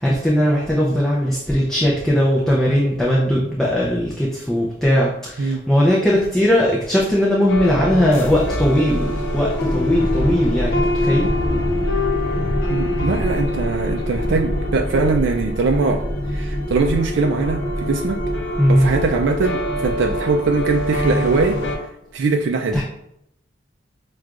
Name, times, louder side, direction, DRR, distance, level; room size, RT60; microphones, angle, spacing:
voice 1, 0.0-11.3 18.6-18.9 22.7-22.8, equal, 5° left, -5 dB, 0.4 m, -19 dB
sound 1, 7.5-21.8, left 1 dB, 70° left, 0.7 m, -23 dB
voice 2, 12.7-16.0 16.3-18.2 18.7-21.6 22.1-22.8, right 3 dB, 65° right, 3 dB, 0.3 m, -21 dB
6.1 x 2.3 x 2.4 m, 0.78 s
head